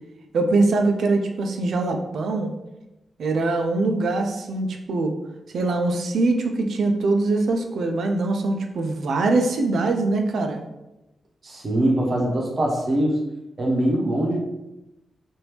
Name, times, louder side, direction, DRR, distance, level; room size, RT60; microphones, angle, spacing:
voice 1, 0.3-2.5 3.2-5.2 5.5-10.6, right 3 dB, 80° right, 4 dB, 0.4 m, -22 dB
voice 2, 11.4-13.2 13.6-14.4, right 1 dB, 45° right, -1 dB, 0.8 m, -22 dB
3.3 x 2.6 x 2.9 m, 0.94 s
wide cardioid pair, 140°, 0 cm